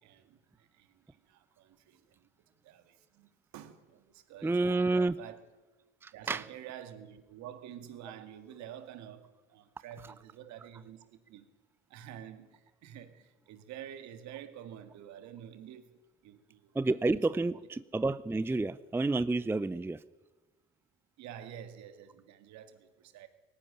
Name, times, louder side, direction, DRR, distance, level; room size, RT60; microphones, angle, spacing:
voice 1, 0.0-2.3 2.6-5.4 6.1-11.5 11.9-17.2 21.2-23.3, right 10 dB, 65° right, 2.1 m, -49 dB
voice 2, 4.4-5.2 6.0-6.4 16.7-20.0, right 2 dB, 10° right, 0.5 m, -29 dB
18.5 x 14.5 x 9.9 m
supercardioid pair, 75°, 30 cm